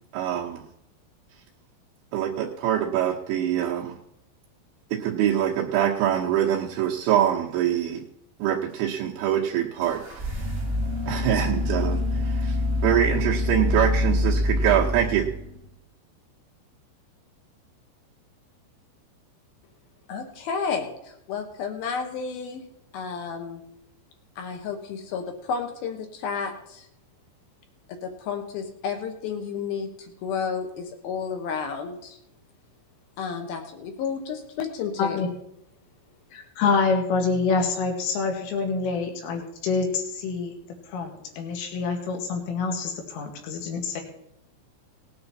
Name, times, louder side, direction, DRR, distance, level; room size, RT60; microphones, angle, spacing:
voice 1, 0.1-0.6 2.1-3.9 4.9-8.0 8.4-10.5 11.1-12.6 12.8-15.3, right 10 dB, 75° right, -3 dB, 3.2 m, -24 dB
sound 1, 9.8-15.7, left 2 dB, 35° right, 1.4 m, -26 dB
voice 2, 20.1-22.6 22.9-23.6 24.4-26.9 27.9-32.2 33.2-35.2, left 6 dB, 70° left, 5 dB, 2.5 m, -32 dB
voice 3, 36.3-40.5 40.9-44.0, left 4 dB, 85° left, 3 dB, 4.5 m, -26 dB
18.5 x 9.6 x 4.3 m, 0.76 s
omnidirectional pair, 5.7 m